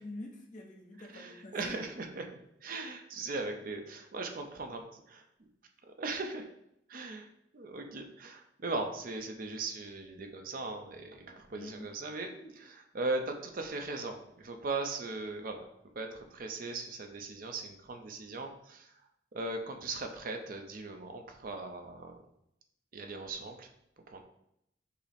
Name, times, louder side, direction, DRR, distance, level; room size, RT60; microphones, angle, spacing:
voice 1, 0.0-1.8 11.5-12.5, left 1 dB, 45° left, 0 dB, 0.8 m, -47 dB
voice 2, 1.1-2.3 2.6-5.2 5.9-6.5 6.9-7.3 7.5-12.3 12.9-15.6 16.0-18.9 19.3-22.2 22.9-23.7 24.1-24.2, right 3 dB, 50° right, 4 dB, 0.5 m, -38 dB
5.5 x 2.0 x 4.2 m, 0.78 s
head